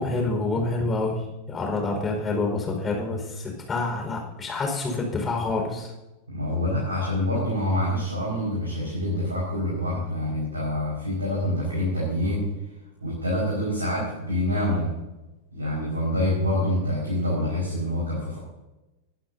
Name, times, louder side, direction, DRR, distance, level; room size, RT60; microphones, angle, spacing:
voice 1, 0.0-5.9, left 3 dB, 20° left, 1 dB, 5.0 m, -27 dB
voice 2, 6.3-12.5 13.0-14.9 15.5-18.4, left 1 dB, 80° right, -5 dB, 5.3 m, -26 dB
21.0 x 11.5 x 2.8 m, 1.0 s
figure-of-eight pair, 90°, 0 cm